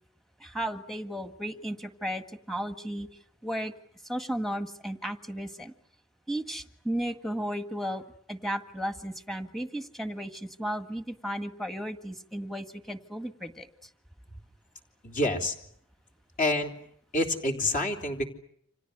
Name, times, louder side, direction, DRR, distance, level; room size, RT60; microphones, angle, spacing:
voice 1, 0.4-3.1 3.4-3.7 4.0-5.7 6.3-8.0 8.3-13.7, equal, ahead, 8 dB, 1.8 m, -34 dB
voice 2, 15.0-15.6 16.4-16.7 17.1-18.3, left 1 dB, 40° left, 4 dB, 3.4 m, -27 dB
29.5 x 27.0 x 6.7 m, 0.68 s
head